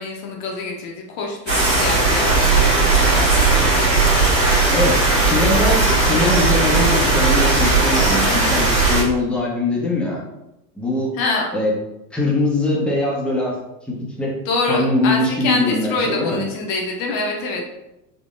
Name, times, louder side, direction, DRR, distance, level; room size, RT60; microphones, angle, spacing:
voice 1, 0.0-3.9 11.1-11.5 14.5-17.6, left 3 dB, 45° left, 0 dB, 1.0 m, -25 dB
sound 1, 1.5-9.0, right 3 dB, 90° right, 1.4 m, -17 dB
voice 2, 4.7-10.2 10.8-11.1 11.5-11.7 12.1-13.5 14.2-14.4 14.7-16.4, left 2 dB, ahead, -3 dB, 0.8 m, -22 dB
3.8 x 2.9 x 2.5 m, 0.90 s
figure-of-eight pair, 80°, 49 cm